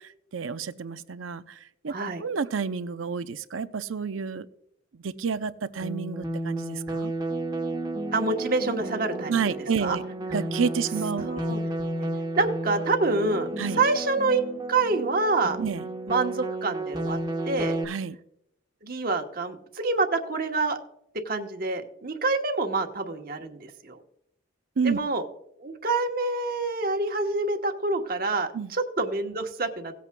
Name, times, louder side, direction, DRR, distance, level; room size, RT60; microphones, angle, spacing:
voice 1, 0.3-1.9 2.2-4.5 4.9-7.1 9.3-10.0 10.3-11.5 13.6-13.8 15.6-15.9 17.9-18.2 24.8-25.0 28.5-28.7, right 6 dB, 85° right, 12 dB, 0.6 m, -30 dB
voice 2, 1.9-2.2 8.1-9.4 9.8-10.0 11.2-11.6 12.0-12.1 12.4-13.5 13.8-14.4 14.7-15.6 16.1-17.2 17.4-17.8 18.8-20.8 21.2-24.0 24.8-25.2 25.6-29.9, right 3 dB, 50° right, 4 dB, 1.1 m, -27 dB
sound 1, 5.8-17.8, right 2 dB, 20° right, 1.1 m, -32 dB
18.0 x 8.4 x 2.3 m, 0.76 s
head